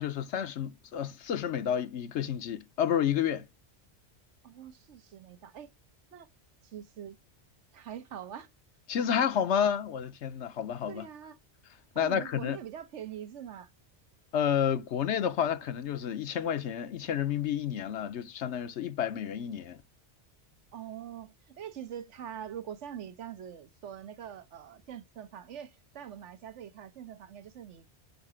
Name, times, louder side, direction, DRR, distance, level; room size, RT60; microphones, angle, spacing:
voice 1, 0.0-3.5 8.9-11.1 12.0-12.6 14.3-19.8, left 8 dB, 80° left, 1.0 m, -30 dB
voice 2, 4.4-5.7 6.1-6.3 6.6-7.2 7.7-8.5 10.9-11.4 11.9-13.7 20.7-27.9, right 9 dB, 90° right, 1.2 m, -43 dB
6.6 x 5.8 x 6.1 m
omnidirectional pair, 1.2 m